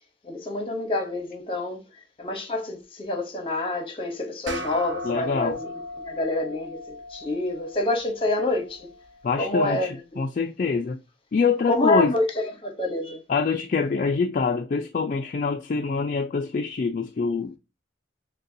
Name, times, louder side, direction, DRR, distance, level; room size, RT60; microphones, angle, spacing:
voice 1, 0.2-1.9 2.2-8.9 9.4-10.2 11.6-13.2, left 2 dB, 30° left, 0.9 m, -27 dB
sound 1, 4.5-9.2, left 1 dB, 75° right, 0.8 m, -38 dB
voice 2, 5.0-5.6 9.2-11.0 11.3-12.1 13.3-17.6, left 5 dB, 45° left, 0.3 m, -25 dB
6.4 x 2.2 x 2.6 m
head